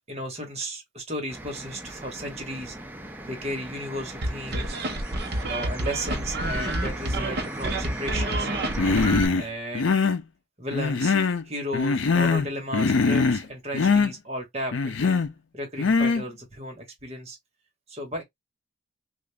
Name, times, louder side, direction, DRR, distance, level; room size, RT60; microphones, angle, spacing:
voice 1, 0.1-2.8 3.2-4.8 5.4-8.5 9.4-9.9 10.6-11.2 11.4-15.1 15.5-17.4 17.9-18.2, equal, 30° right, 1.3 m, -34 dB
sound 1, 1.3-9.1, right 1 dB, 10° right, 0.4 m, -37 dB
sound 2, 4.2-9.3, right 1 dB, 55° right, 0.9 m, -28 dB
Human voice, 8.8-9.4 9.7-10.2 10.7-11.4 11.7-12.5 12.7-13.4 13.7-14.1 14.7-15.3 15.8-16.2, left 4 dB, 70° left, 0.5 m, -22 dB
2.9 x 2.5 x 3.4 m
head